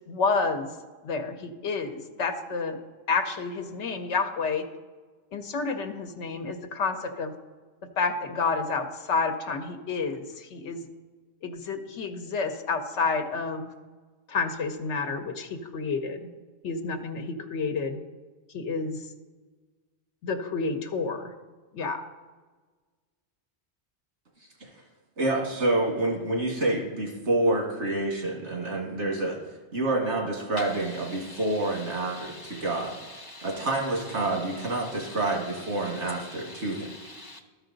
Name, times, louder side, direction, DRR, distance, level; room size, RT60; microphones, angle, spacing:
voice 1, 0.1-0.7 1.0-2.8 3.1-4.7 5.3-7.3 8.0-10.8 11.4-13.7 14.3-16.3 16.6-18.0 18.5-19.0 20.2-21.3 21.7-22.0, left 4 dB, 90° left, 6 dB, 1.0 m, -29 dB
voice 2, 25.2-29.4 29.7-32.9 33.4-36.9, right 2 dB, 85° right, -1 dB, 2.0 m, -28 dB
voice 3, 30.6-37.4, left 1 dB, 35° right, 2 dB, 0.4 m, -45 dB
13.0 x 4.8 x 3.8 m, 1.4 s
omnidirectional pair, 1.2 m